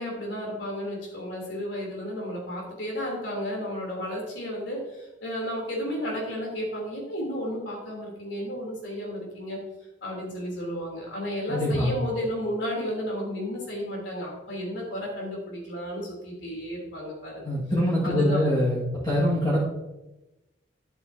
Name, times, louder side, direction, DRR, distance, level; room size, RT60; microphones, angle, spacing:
voice 1, 0.0-9.6 10.0-17.5 18.0-18.4, equal, 75° left, -1 dB, 3.3 m, -33 dB
voice 2, 11.5-11.9 17.4-19.6, left 1 dB, 25° left, -8 dB, 1.9 m, -24 dB
10.5 x 7.7 x 2.8 m, 1.0 s
head